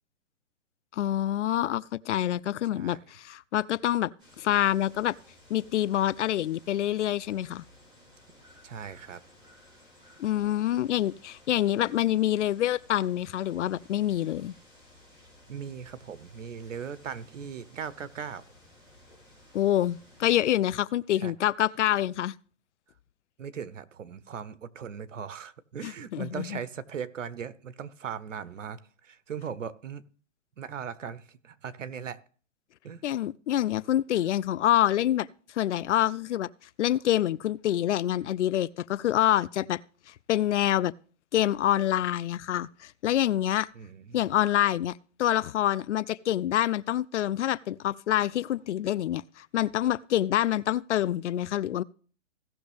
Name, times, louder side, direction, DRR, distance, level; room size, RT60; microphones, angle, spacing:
voice 1, 0.9-4.1 4.4-5.2 5.5-7.6 10.2-14.5 19.5-22.3 25.8-26.6 33.0-35.3 35.6-36.5 36.8-39.8 40.3-40.9 41.3-43.7 44.1-51.8, left 12 dB, 70° left, 0.5 m, -26 dB
voice 2, 2.7-3.0 8.6-9.2 15.5-18.4 21.2-21.3 23.4-30.1 30.6-32.2 32.8-33.0 43.7-44.3, right 7 dB, 85° right, 0.9 m, -39 dB
sound 1, 4.2-20.6, left 1 dB, 10° right, 4.1 m, -56 dB
17.0 x 6.2 x 3.4 m
hypercardioid pair, 150°, 36 cm